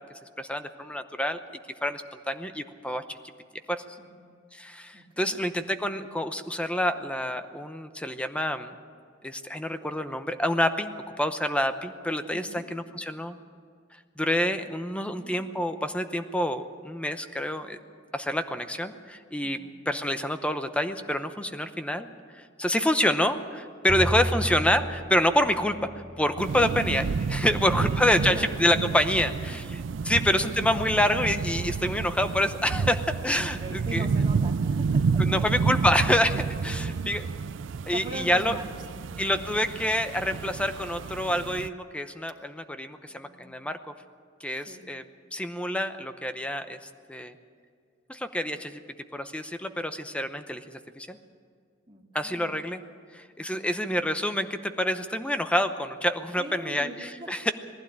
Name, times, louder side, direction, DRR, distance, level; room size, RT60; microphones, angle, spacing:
voice 1, 0.4-1.4 1.8-3.2 3.7-3.8 4.5-8.7 9.2-13.3 14.2-17.8 18.1-22.1 22.3-25.9 26.2-29.6 30.0-34.0 35.2-37.2 37.9-38.6 39.2-43.8 44.4-45.0 45.3-46.8 47.1-47.3 48.1-48.8 49.1-51.2 52.1-52.8 53.1-57.5, left 1 dB, 5° left, 9 dB, 0.8 m, -27 dB
voice 2, 4.0-4.3 4.9-5.5 12.3-12.6 19.4-19.7 27.3-28.5 29.2-29.4 30.1-30.5 33.4-35.4 36.6-37.3 37.9-39.3 43.1-43.7 44.6-44.9 51.9-52.6 53.4-54.0 56.4-57.3, right 1 dB, 25° right, -1 dB, 2.3 m, -42 dB
Bowed string instrument, 23.9-30.0, equal, 85° left, 3.3 m, -36 dB
sound 1, 26.4-41.7, right 5 dB, 80° right, 0.4 m, -30 dB
19.5 x 15.5 x 8.7 m, 2.1 s
head